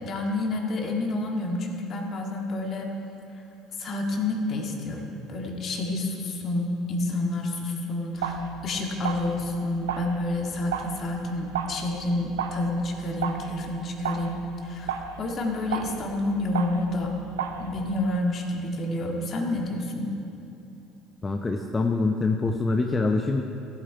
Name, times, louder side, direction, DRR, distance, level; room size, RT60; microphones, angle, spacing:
voice 1, 0.0-2.9 3.8-17.1 17.6-20.1, left 2 dB, 45° left, 1 dB, 1.9 m, -29 dB
sound 1, 8.1-18.1, right 7 dB, 80° right, 0.6 m, -35 dB
voice 2, 21.2-23.4, left 3 dB, 25° left, 4 dB, 0.7 m, -25 dB
14.5 x 8.6 x 4.6 m, 2.9 s
hypercardioid pair, 60°, 0 cm